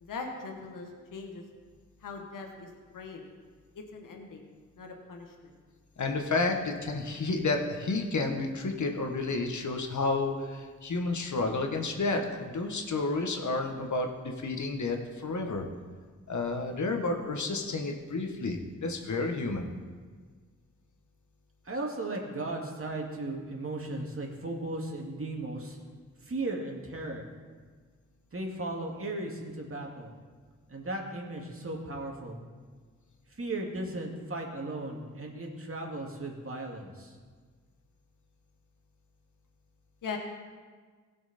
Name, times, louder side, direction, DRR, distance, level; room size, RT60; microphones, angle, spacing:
voice 1, 0.0-1.4 2.0-2.7 2.9-3.3 3.7-4.5 4.8-5.5 40.0-40.2, left 4 dB, 80° left, 2 dB, 1.4 m, -41 dB
voice 2, 6.0-15.7 16.3-19.7, left 3 dB, 60° left, 3 dB, 1.5 m, -31 dB
voice 3, 21.6-25.8 26.2-27.2 28.3-30.1 30.7-32.4 33.3-37.1, right 2 dB, 45° right, 0 dB, 2.4 m, -36 dB
16.5 x 6.0 x 4.3 m, 1.5 s
supercardioid pair, 40°, 32 cm